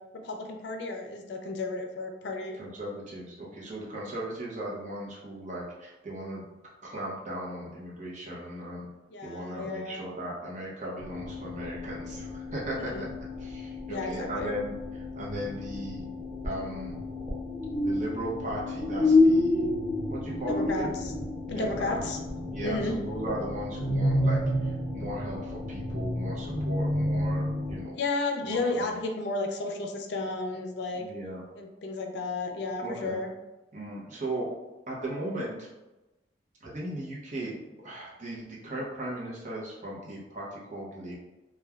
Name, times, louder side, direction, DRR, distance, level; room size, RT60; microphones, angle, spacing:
voice 1, 0.1-2.6 9.1-10.0 12.8-13.0 13.9-14.5 20.5-21.1 21.5-22.2 22.6-22.9 28.0-31.0 31.5-33.3, left 3 dB, 65° left, 2 dB, 0.4 m, -33 dB
voice 2, 2.6-6.4 6.8-8.9 9.2-13.1 13.4-14.8 15.1-16.0 16.4-17.0 17.8-19.7 20.1-20.9 21.5-22.0 22.5-28.0 28.4-28.9 30.9-31.4 32.8-33.2 33.7-34.5 34.9-35.7 36.6-37.5 37.8-41.2, right 1 dB, 45° right, -5 dB, 0.8 m, -37 dB
sound 1, 11.0-27.8, left 2 dB, 15° left, 0.8 m, -30 dB
3.1 x 2.2 x 2.3 m, 1.1 s
head